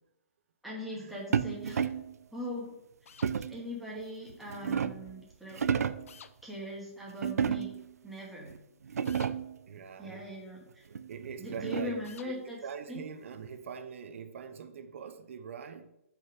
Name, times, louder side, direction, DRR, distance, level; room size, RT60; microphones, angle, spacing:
voice 1, 0.6-1.9 2.3-3.2 3.5-5.7 6.4-7.7 8.0-8.6 9.0-9.1 10.0-10.8 11.4-12.6 12.9-13.0, left 1 dB, ahead, 2.0 m, -41 dB
sound 1, 1.3-2.1 3.2-3.7 4.3-5.1 5.5-6.1 7.2-7.9 8.5-8.6 8.8-9.6 10.9-12.1, right 7 dB, 85° right, 0.5 m, -32 dB
sound 2, 3.1-3.3 6.1-6.3 9.0-9.3 12.0-12.3, left 7 dB, 65° left, 0.6 m, -51 dB
voice 2, 9.7-10.3 10.9-15.9, right 6 dB, 60° right, 0.9 m, -43 dB
7.4 x 5.3 x 5.0 m
hypercardioid pair, 155°, 8 cm